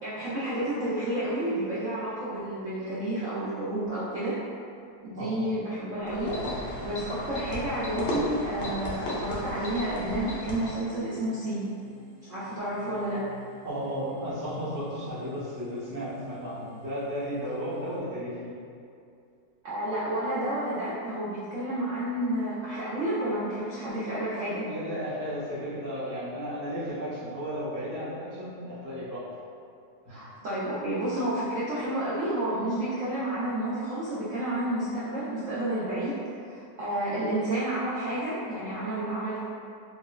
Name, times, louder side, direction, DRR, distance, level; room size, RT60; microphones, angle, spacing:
voice 1, 0.0-4.4 5.0-6.3 6.8-11.6 12.3-13.2 19.6-24.7 30.1-36.1 36.4-39.4, right 1 dB, 75° right, -10 dB, 0.7 m, -30 dB
sound 1, 6.1-10.9, left 1 dB, 70° left, 0.6 m, -34 dB
sound 2, 6.2-18.0, right 2 dB, 45° left, 1.1 m, -49 dB
voice 2, 13.6-18.5 24.6-29.2 30.1-30.2, equal, 30° right, -11 dB, 0.3 m, -34 dB
4.3 x 2.0 x 2.2 m, 2.4 s
omnidirectional pair, 1.9 m